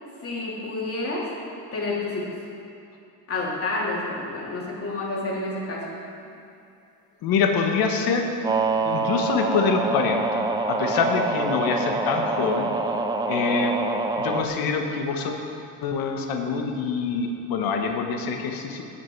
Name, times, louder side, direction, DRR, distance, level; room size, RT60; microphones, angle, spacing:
voice 1, 0.2-1.3 1.7-2.3 3.3-5.8, left 2 dB, 35° left, -5 dB, 3.1 m, -29 dB
voice 2, 7.2-8.3 8.8-12.7 13.3-13.7 14.2-15.4 15.8-18.8, left 5 dB, 65° left, 4 dB, 1.4 m, -25 dB
sound 1, 8.4-14.5, right 3 dB, 10° right, 0.5 m, -26 dB
17.5 x 5.9 x 4.7 m, 2.6 s
cardioid pair, 105°, 38 cm